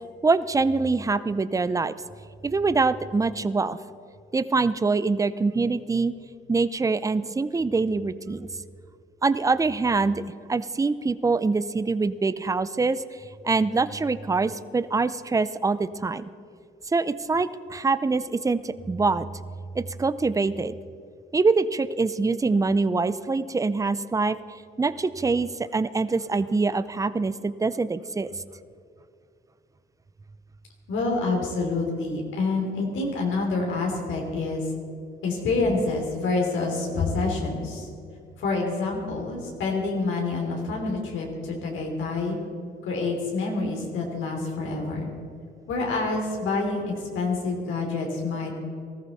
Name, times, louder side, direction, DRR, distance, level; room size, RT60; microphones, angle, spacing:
voice 1, 0.2-1.9 2.4-3.8 4.3-6.1 6.5-8.5 9.2-10.2 10.5-13.0 13.4-16.2 16.9-19.3 19.7-20.8 21.3-24.4 24.8-28.3, right 4 dB, 15° right, 15 dB, 0.5 m, -24 dB
voice 2, 30.9-34.6 35.2-37.9 38.4-42.4 42.9-45.1 45.7-48.5, left 3 dB, 80° left, -1 dB, 3.2 m, -27 dB
18.5 x 14.0 x 4.2 m, 2.4 s
cardioid pair, 90°, 20 cm